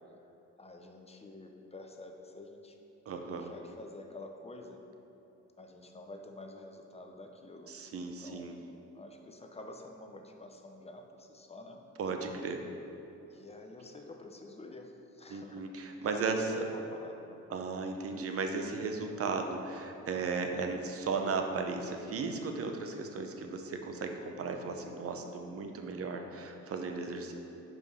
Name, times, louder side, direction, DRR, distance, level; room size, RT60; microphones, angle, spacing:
voice 1, 0.6-2.8 3.2-4.8 5.6-8.5 8.9-11.8 13.3-15.6 16.0-17.4, left 2 dB, 20° left, 3 dB, 0.6 m, -49 dB
voice 2, 3.1-3.5 7.7-8.6 12.0-12.6 15.3-16.4 17.5-27.3, right 4 dB, 50° right, 4 dB, 0.7 m, -36 dB
5.2 x 4.8 x 5.5 m, 3.0 s
cardioid pair, 90°, 30 cm